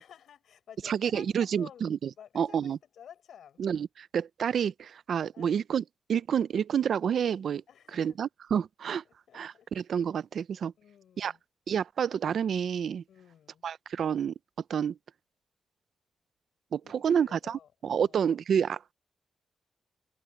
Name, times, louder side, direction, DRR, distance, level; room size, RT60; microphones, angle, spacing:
voice 1, 0.0-1.9 2.2-3.6 5.3-5.5 7.7-8.2 9.3-9.7 10.8-11.4 13.1-13.6 16.8-17.7 18.0-18.2, left 9 dB, 85° left, 5.6 m, -52 dB
voice 2, 0.8-2.8 3.6-5.8 6.1-7.6 7.9-9.0 9.3-10.7 11.2-11.3 11.7-13.0 13.6-14.3 14.7-15.0 16.7-18.9, right 8 dB, 65° right, 0.5 m, -29 dB
wide cardioid pair, 165°, 0 cm